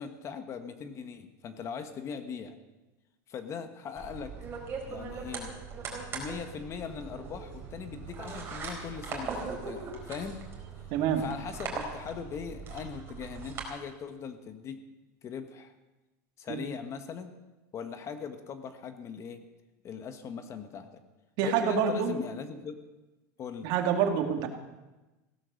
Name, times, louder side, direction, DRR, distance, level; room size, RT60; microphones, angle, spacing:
voice 1, 0.0-2.6 3.3-4.4 4.9-5.6 6.1-10.5 11.2-14.8 15.2-15.7 16.4-17.3 17.7-19.4 19.8-21.0 21.4-22.8 23.4-23.7, left 6 dB, 30° left, 8 dB, 1.3 m, -40 dB
sound 1, 3.9-13.6, right 5 dB, 25° right, 3.9 m, -40 dB
voice 2, 10.9-11.2 16.5-16.6 21.4-22.1 23.6-24.5, right 7 dB, 55° right, 4 dB, 2.3 m, -27 dB
16.5 x 12.0 x 6.5 m, 1.1 s
supercardioid pair, 140°, 9 cm